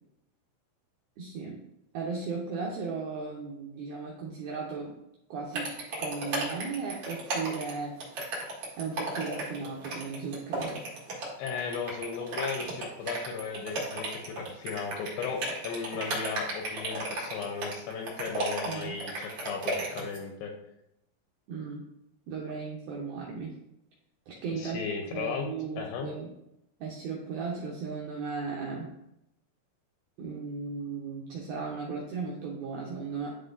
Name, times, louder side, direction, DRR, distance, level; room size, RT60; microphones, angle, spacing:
voice 1, 1.2-1.6 1.9-4.9 5.3-5.7 6.0-8.0 8.8-10.8 18.7-19.0 21.5-21.9 22.3-23.6 24.3-24.8 25.1-26.3 26.8-28.9 30.2-33.3, right 5 dB, 85° right, -2 dB, 2.2 m, -36 dB
sound 1, 5.5-20.2, right 2 dB, 65° right, 1.5 m, -34 dB
voice 2, 11.4-20.5 24.5-25.5 25.8-26.1, left 5 dB, 80° left, 3 dB, 2.7 m, -36 dB
10.5 x 4.1 x 2.6 m, 0.82 s
omnidirectional pair, 5.4 m